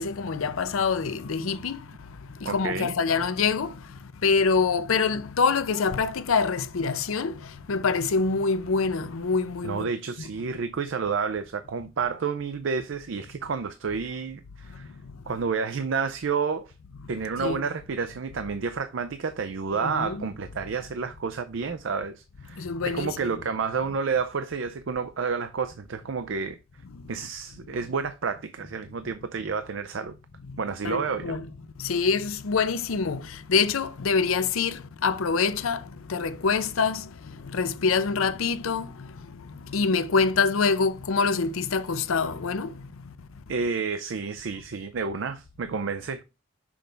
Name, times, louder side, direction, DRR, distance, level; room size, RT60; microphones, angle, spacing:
voice 1, 0.0-1.8 2.4-3.7 4.2-7.3 7.7-9.9 10.2-10.3 17.4-17.6 19.7-20.3 22.6-23.4 30.8-31.5 31.8-35.8 36.1-37.0 37.5-38.9 39.7-42.7, left 5 dB, 90° left, 0.6 m, -25 dB
voice 2, 2.4-2.9 9.6-14.9 15.3-16.7 17.1-26.6 27.1-30.1 30.6-31.4 43.5-46.2, right 5 dB, 70° right, 0.5 m, -30 dB
6.2 x 3.4 x 5.0 m
head